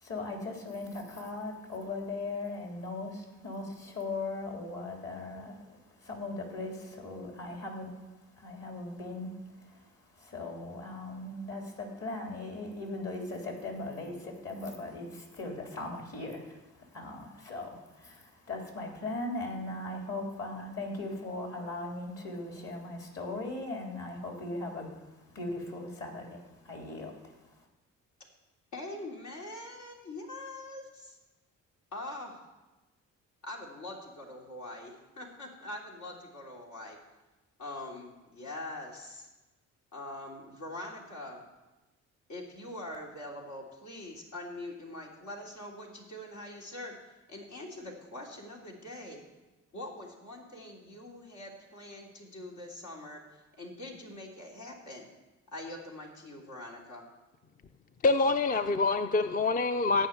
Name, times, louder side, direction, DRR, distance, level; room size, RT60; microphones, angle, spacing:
voice 1, 0.0-5.8 6.0-7.9 8.4-9.3 10.2-16.6 16.9-24.9 25.4-26.4 26.6-27.1, left 2 dB, 50° left, 1 dB, 3.6 m, -38 dB
voice 2, 28.7-31.2 31.9-32.5 33.4-37.0 37.6-39.3 39.9-41.4 42.3-47.0 47.3-49.2 49.7-55.1 55.5-57.0, left 1 dB, 80° left, -2 dB, 3.2 m, -43 dB
voice 3, 58.0-60.1, left 3 dB, 30° left, 10 dB, 0.5 m, -26 dB
14.0 x 5.7 x 9.5 m, 1.1 s
cardioid pair, 90°, 30 cm